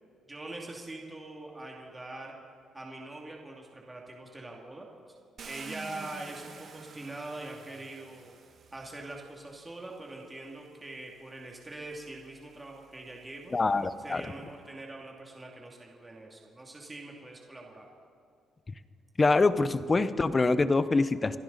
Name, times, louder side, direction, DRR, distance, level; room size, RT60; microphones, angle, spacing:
voice 1, 0.3-2.3 2.7-5.2 5.5-8.3 8.7-13.6 14.0-17.9, right 2 dB, 15° right, -1 dB, 2.5 m, -43 dB
Car, 5.4-9.5 10.4-10.5 11.1-14.4, right 5 dB, 55° right, 1.7 m, -50 dB
voice 2, 13.5-14.2 19.2-21.4, left 3 dB, 25° left, 13 dB, 0.8 m, -25 dB
28.0 x 11.5 x 4.1 m, 2.3 s
cardioid pair, 90°, 0 cm